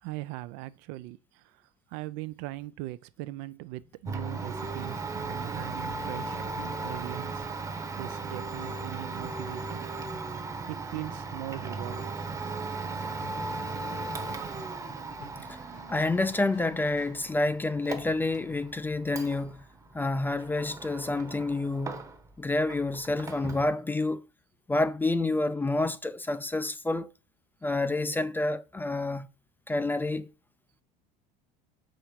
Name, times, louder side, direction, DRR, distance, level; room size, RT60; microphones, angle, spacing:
voice 1, 0.0-7.7 8.0-9.9 10.7-12.2, right 17 dB, 70° right, 0.5 m, -40 dB
Walk footsteps, 3.8-8.3 8.6-8.7, right 5 dB, 90° right, 1.3 m, -51 dB
Domestic sounds home sounds, 4.0-22.4 22.7-23.7, right 3 dB, 15° right, 0.9 m, -37 dB
sound 1, 12.8-17.2 18.3-18.8, left 7 dB, 60° left, 1.4 m, -55 dB
voice 2, 15.9-19.7 19.9-22.1 22.4-24.2 24.7-27.1 27.6-29.3 29.7-30.3, left 2 dB, 10° left, 0.4 m, -28 dB
5.9 x 5.1 x 4.4 m
supercardioid pair, 110°, 20 cm